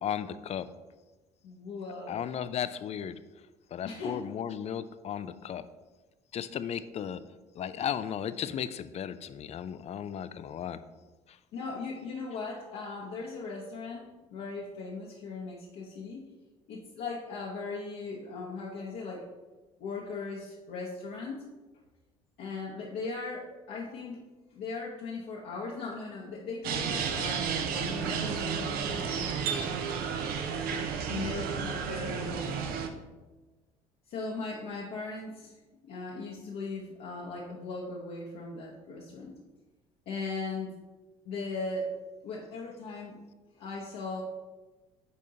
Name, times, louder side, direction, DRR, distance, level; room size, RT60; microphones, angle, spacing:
voice 1, 0.0-0.7 2.1-3.2 3.7-5.6 6.3-7.2 7.6-10.8, left 9 dB, 40° left, 13 dB, 0.4 m, -35 dB
voice 2, 1.4-2.2 3.8-4.2 11.5-16.2 16.7-19.3 19.8-21.4 22.4-24.2 24.5-29.1 31.0-32.6 34.1-35.6 35.8-39.3 40.1-40.7 41.2-41.9 42.2-43.2 43.6-44.2, left 3 dB, 60° left, -4 dB, 0.9 m, -38 dB
sound 1, 26.6-32.9, right 6 dB, 60° right, 0.6 m, -32 dB
9.5 x 3.6 x 2.8 m, 1.2 s
hypercardioid pair, 60°, 17 cm